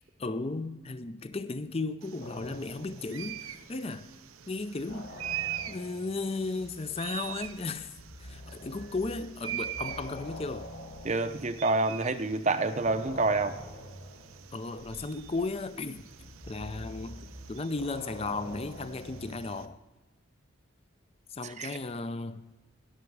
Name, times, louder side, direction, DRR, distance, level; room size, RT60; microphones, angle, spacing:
voice 1, 0.2-4.1 4.5-5.1 5.7-7.9 8.2-10.7 14.5-16.1 16.5-19.8 21.3-22.5, left 3 dB, 30° left, 0.5 m, -35 dB
sound 1, 2.0-19.7, right 12 dB, 90° right, 0.7 m, -44 dB
sound 2, 2.2-4.1 4.3-12.3 12.8-19.7, left 1 dB, 50° left, 1.2 m, -46 dB
voice 2, 11.0-13.6 21.4-21.8, right 3 dB, 35° right, 0.7 m, -28 dB
20.5 x 7.0 x 4.7 m
head